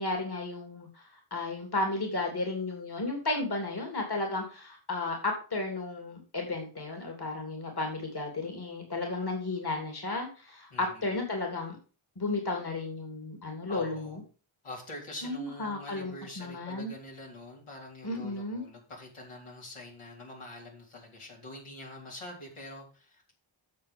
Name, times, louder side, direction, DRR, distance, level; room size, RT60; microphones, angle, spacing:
voice 1, 0.0-11.8 12.2-14.2 15.2-16.9 18.0-18.6, left 2 dB, 50° left, 3 dB, 3.2 m, -33 dB
voice 2, 10.7-11.1 13.7-14.2 14.6-23.3, left 1 dB, 80° left, -2 dB, 4.0 m, -45 dB
9.4 x 6.8 x 5.4 m, 0.36 s
cardioid pair, 50°, 49 cm